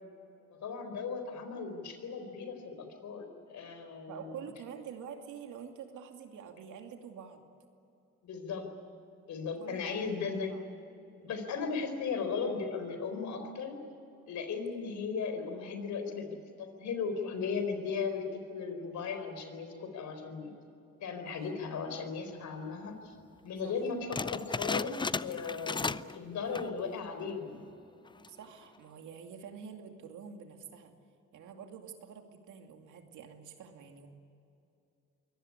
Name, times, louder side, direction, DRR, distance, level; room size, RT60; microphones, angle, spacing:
voice 1, 0.5-4.4 8.2-8.7 9.3-10.6 11.2-13.8 14.3-20.5 21.0-23.2 23.4-27.7, left 5 dB, 70° left, 7 dB, 4.4 m, -37 dB
voice 2, 4.1-7.5 9.6-10.2 10.5-10.6 21.2-21.5 23.6-23.7 28.3-30.9 31.3-34.1, right 7 dB, 80° right, 4 dB, 2.6 m, -47 dB
sound 1, 24.1-26.2 26.4-26.8 27.3-27.4 28.1-28.4, left 4 dB, 15° left, 0.5 m, -35 dB
23.5 x 18.5 x 9.8 m, 2.8 s
cardioid pair, 90°, 30 cm